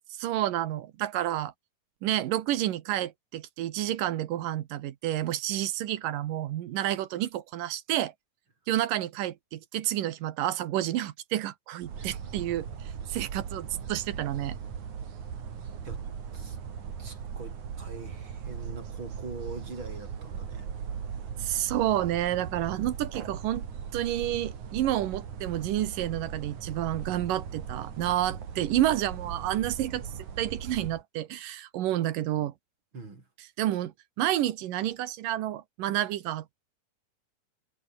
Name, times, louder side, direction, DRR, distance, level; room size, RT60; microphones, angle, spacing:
voice 1, 0.1-1.5 2.0-8.1 8.7-14.6 21.4-23.7 23.9-32.5 33.6-36.6, right 13 dB, 80° right, 2.9 m, -30 dB
sound 1, 11.8-31.0, right 7 dB, 65° right, 4.1 m, -39 dB
voice 2, 17.0-20.7 22.3-22.5 32.9-33.3, right 3 dB, 35° right, 5.0 m, -43 dB
omnidirectional pair, 3.8 m